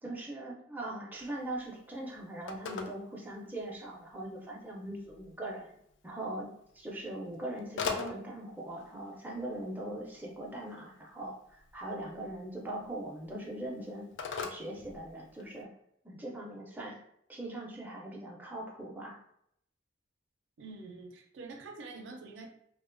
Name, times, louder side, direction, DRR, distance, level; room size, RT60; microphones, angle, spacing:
voice 1, 0.0-5.7 6.0-6.5 6.7-14.1 14.4-15.7 16.0-17.0 17.3-19.2, right 1 dB, 10° right, -2 dB, 0.4 m, -41 dB
Telephone, 1.1-15.6, left 5 dB, 70° left, 0.3 m, -45 dB
voice 2, 20.6-22.5, right 3 dB, 85° right, 2 dB, 0.5 m, -46 dB
2.4 x 2.1 x 2.4 m, 0.73 s
head